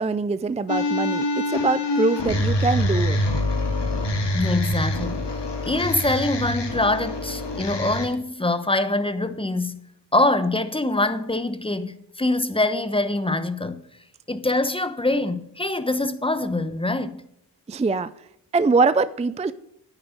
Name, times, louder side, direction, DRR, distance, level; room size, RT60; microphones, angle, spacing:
voice 1, 0.0-3.2 17.7-18.1 18.5-19.5, right 4 dB, 15° right, 0.4 m, -23 dB
sound 1, 0.7-8.1, left 1 dB, 70° left, 2.3 m, -25 dB
voice 2, 4.3-5.2 5.6-9.8 10.1-13.8 14.3-17.2, left 2 dB, 10° left, 1.0 m, -24 dB
9.6 x 9.0 x 5.1 m
cardioid pair, 70°, 43 cm